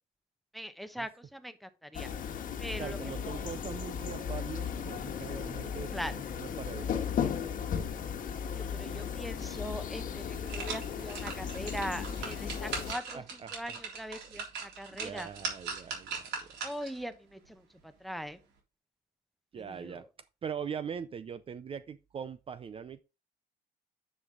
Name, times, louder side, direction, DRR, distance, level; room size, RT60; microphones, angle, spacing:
voice 1, 0.5-2.1 2.6-3.0 5.9-6.1 8.5-13.2 13.5-15.3 16.6-17.6 18.0-18.4 19.7-20.0, equal, ahead, 0.9 m, -41 dB
sound 1, 1.9-12.9, left 7 dB, 55° left, 1.4 m, -36 dB
voice 2, 2.8-6.9 7.3-7.9 12.2-12.3 13.1-13.8 14.3-14.4 14.9-16.2 19.5-20.1 20.4-23.0, right 7 dB, 35° right, 0.5 m, -42 dB
sound 2, 10.1-17.0 17.4-17.5, right 5 dB, 80° right, 3.7 m, -40 dB
9.8 x 5.3 x 3.8 m
cardioid pair, 110°, 17 cm